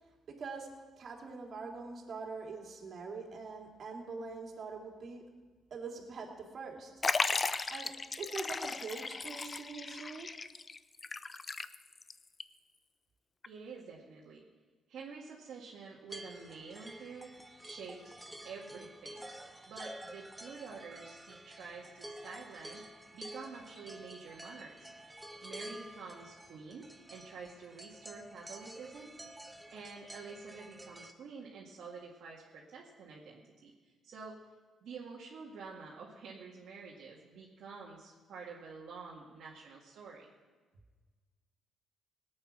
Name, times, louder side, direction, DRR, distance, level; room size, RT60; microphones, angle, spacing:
voice 1, 0.3-0.7 1.0-5.2 5.7-6.9 7.7-10.3, right 4 dB, 55° right, 1 dB, 2.7 m, -43 dB
Liquid, 7.0-12.1 12.4-12.5 13.4-13.5, left 4 dB, 35° left, 0.5 m, -36 dB
voice 2, 13.5-14.4 14.9-17.3 17.6-18.1 18.4-19.2 19.7-22.8 23.1-24.9 25.4-29.1 29.7-33.7 34.0-34.4 34.8-40.3, right 5 dB, 70° right, -4 dB, 2.0 m, -48 dB
sound 1, 16.1-31.1, right 1 dB, 10° right, 1.1 m, -50 dB
17.5 x 8.7 x 6.1 m, 1.4 s
cardioid pair, 75°, 0 cm